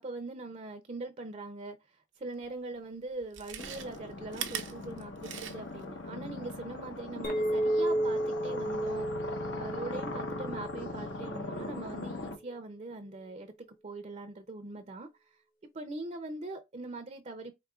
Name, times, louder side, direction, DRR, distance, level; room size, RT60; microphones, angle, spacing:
voice 1, 0.0-1.8 2.2-15.1 15.7-17.5, right 2 dB, 40° right, 0.5 m, -42 dB
Chewing mastication, 2.4-2.5 3.2-5.9 6.2-6.3, right 9 dB, 90° right, 0.7 m, -41 dB
sound 1, 3.6-12.4, left 2 dB, 85° left, 1.1 m, -40 dB
Chink clink, 7.2-11.7, right 1 dB, 50° left, 1.0 m, -32 dB
4.7 x 3.5 x 2.3 m
head